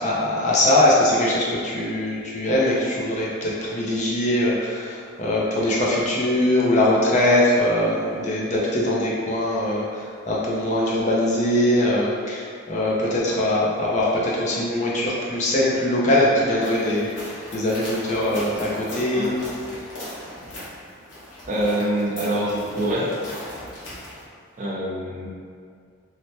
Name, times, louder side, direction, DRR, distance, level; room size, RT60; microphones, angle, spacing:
voice 1, 0.0-17.1 17.5-19.4, left 1 dB, 35° left, -5 dB, 0.4 m, -22 dB
sound 1, 16.6-24.2, left 1 dB, 60° left, 0.9 m, -38 dB
voice 2, 21.5-23.1 24.6-25.3, right 1 dB, 35° right, -5 dB, 0.4 m, -25 dB
3.2 x 2.1 x 2.7 m, 2.2 s
head